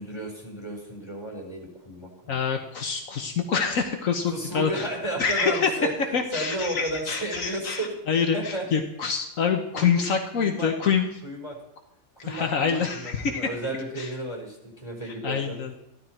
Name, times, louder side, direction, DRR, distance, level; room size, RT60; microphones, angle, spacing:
voice 1, 0.0-2.4 4.3-7.9 8.3-8.6 9.7-10.0 10.4-10.7 11.2-11.5 12.2-15.6, right 1 dB, 20° left, -1 dB, 4.3 m, -33 dB
voice 2, 2.3-4.9 5.2-5.7 6.1-11.1 12.3-13.5 14.0-14.1 15.2-15.7, left 6 dB, 75° left, 3 dB, 1.5 m, -26 dB
14.5 x 12.5 x 4.5 m, 0.84 s
omnidirectional pair, 1.4 m